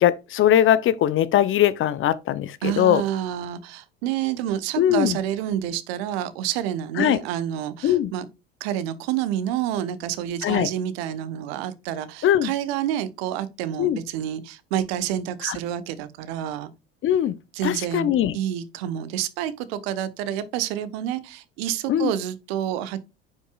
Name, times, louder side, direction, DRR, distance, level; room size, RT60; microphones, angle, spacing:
voice 1, 0.0-3.0 4.8-5.2 7.0-7.2 7.8-8.1 10.4-10.7 12.2-12.5 13.8-14.0 15.4-15.6 17.0-17.4 17.6-18.4 21.9-22.1, left 11 dB, 40° left, 0.7 m, -20 dB
voice 2, 2.6-8.2 8.6-16.7 17.5-23.0, right 11 dB, 70° right, 1.1 m, -28 dB
9.5 x 5.4 x 2.4 m
hypercardioid pair, 70°, 32 cm